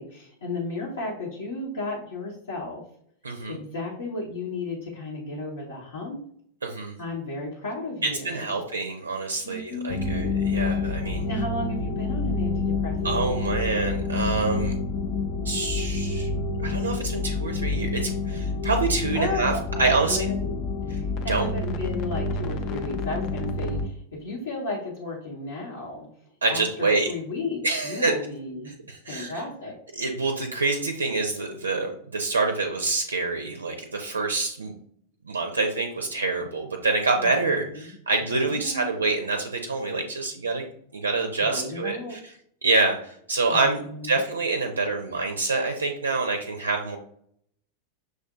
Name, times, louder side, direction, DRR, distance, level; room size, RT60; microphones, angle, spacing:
voice 1, 0.0-2.8 3.5-6.2 7.0-8.5 9.4-10.3 11.2-13.4 19.1-20.5 20.9-26.1 26.5-28.7 29.1-29.8 37.2-37.9 38.3-39.0 41.4-42.2 43.5-44.2, left 2 dB, 65° left, -5 dB, 0.9 m, -34 dB
voice 2, 3.2-3.6 6.6-6.9 8.0-11.2 13.0-14.8 15.4-16.3 16.6-19.5 19.8-20.2 21.3-21.5 26.4-27.1 27.6-28.1 28.9-29.4 29.9-34.7 35.3-40.7 40.9-42.2 42.6-47.0, right 3 dB, 75° right, 4 dB, 0.4 m, -26 dB
sound 1, 9.9-23.9, left 3 dB, 40° left, 0.4 m, -28 dB
6.2 x 2.6 x 2.5 m, 0.66 s
figure-of-eight pair, 90°, 0 cm